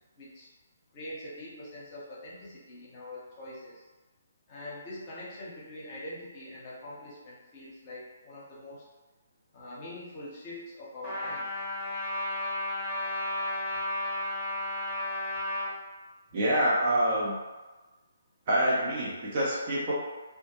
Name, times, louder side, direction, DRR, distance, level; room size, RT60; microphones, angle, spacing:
voice 1, 0.2-0.5 0.9-3.9 4.5-8.8 9.5-11.5, left 1 dB, 35° left, -6 dB, 0.8 m, -43 dB
Trumpet, 11.0-15.7, left 1 dB, 5° left, 0.9 m, -33 dB
voice 2, 16.3-17.4 18.5-19.9, right 1 dB, 40° right, -6 dB, 0.7 m, -26 dB
2.2 x 2.1 x 2.9 m, 1.2 s
figure-of-eight pair, 140°, 0 cm